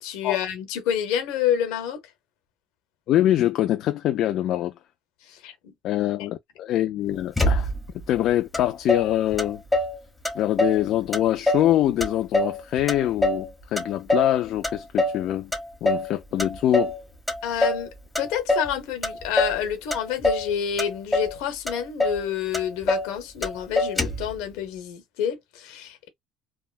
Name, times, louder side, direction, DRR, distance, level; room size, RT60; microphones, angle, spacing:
voice 1, 0.0-2.0 5.2-5.7 17.4-26.1, left 9 dB, 75° left, 1.0 m, -28 dB
voice 2, 3.1-4.7 5.8-7.7 8.1-9.6 10.3-15.5 15.8-16.9, left 13 dB, 60° left, 0.3 m, -24 dB
Motor vehicle (road), 7.4-8.0 8.5-8.6 8.9-10.0 10.2-10.8 11.1-11.7 12.0-13.5 13.8-14.4 14.6-15.2 15.5-16.1 16.4-17.0 17.3-17.9 18.2-18.7 19.0-19.6 19.9-20.5 20.8-21.4 21.7-21.8 22.0-22.2 22.5-23.1 23.4-23.5 23.8-24.3, left 1 dB, 10° left, 1.2 m, -24 dB
3.4 x 2.1 x 2.4 m
supercardioid pair, 85°, 0 cm